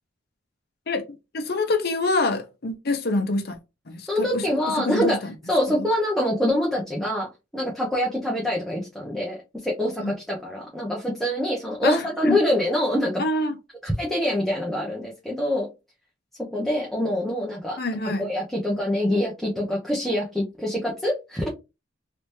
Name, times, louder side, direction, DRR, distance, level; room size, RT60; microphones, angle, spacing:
voice 1, 1.3-3.6 3.9-4.4 4.8-5.3 5.8-5.9 10.0-10.1 11.8-12.4 13.2-13.6 17.8-18.3, left 2 dB, 55° left, 0.7 m, -26 dB
voice 2, 4.1-13.1 13.8-15.7 16.5-17.8 18.2-21.5, left 1 dB, ahead, 0.9 m, -25 dB
3.4 x 3.0 x 2.7 m
head